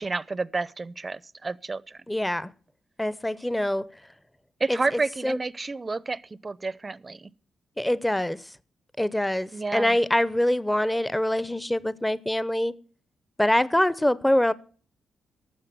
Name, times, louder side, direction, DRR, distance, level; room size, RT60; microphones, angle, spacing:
voice 1, 0.0-2.0 4.6-7.3 9.5-10.0, right 3 dB, 30° right, 0.6 m, -30 dB
voice 2, 2.1-2.5 3.0-3.9 4.7-4.8 5.2-5.4 7.8-8.4 9.0-12.7 13.4-14.5, left 1 dB, 10° left, 0.7 m, -24 dB
12.5 x 7.3 x 7.7 m
cardioid pair, 70°, 0 cm